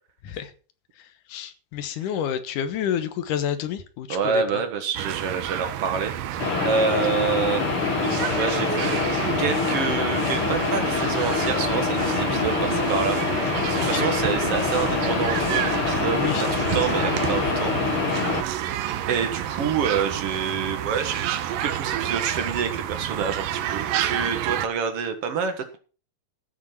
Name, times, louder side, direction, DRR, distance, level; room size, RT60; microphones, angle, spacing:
voice 1, 1.0-4.6 13.7-14.1 16.1-16.5, left 9 dB, 75° left, 10 dB, 2.6 m, -29 dB
voice 2, 4.1-7.6 8.4-8.9 9.4-13.2 13.7-17.7 19.1-25.8, right 6 dB, 50° right, 7 dB, 2.2 m, -27 dB
sound 1, 5.0-24.7, right 11 dB, 90° right, 2.6 m, -29 dB
sound 2, 6.4-18.4, left 5 dB, 45° left, 2.2 m, -25 dB
14.0 x 6.5 x 5.9 m, 0.38 s
omnidirectional pair, 3.9 m